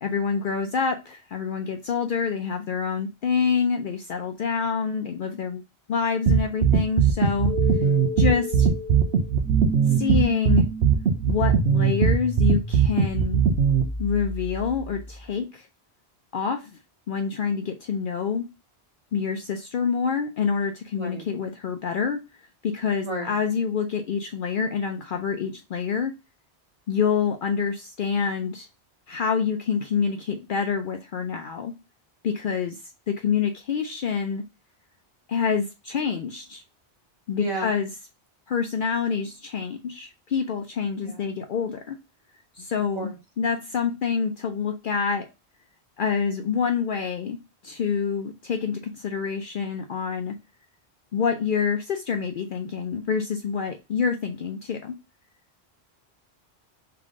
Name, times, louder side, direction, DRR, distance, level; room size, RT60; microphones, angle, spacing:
voice 1, 0.0-5.6 5.9-7.5 8.2-8.7 9.8-10.6 11.3-13.4 14.0-15.7 16.3-16.8 17.1-18.4 19.1-22.2 22.6-26.1 26.9-28.7 29.1-31.7 32.2-32.8 33.1-34.4 35.3-36.6 37.3-37.9 38.5-42.0 42.6-43.1 43.4-45.3 46.0-47.4 47.6-50.3 51.1-54.9, left 6 dB, 60° left, 0.6 m, -27 dB
sound 1, 6.3-13.8, right 7 dB, 75° right, 1.0 m, -19 dB
sound 2, 7.5-15.3, equal, 10° left, 0.6 m, -33 dB
voice 2, 7.6-8.0 21.0-21.2 23.0-23.3 37.4-37.7 41.0-41.2 43.0-43.1, right 1 dB, 25° right, 1.7 m, -33 dB
3.6 x 3.4 x 3.6 m
omnidirectional pair, 1.1 m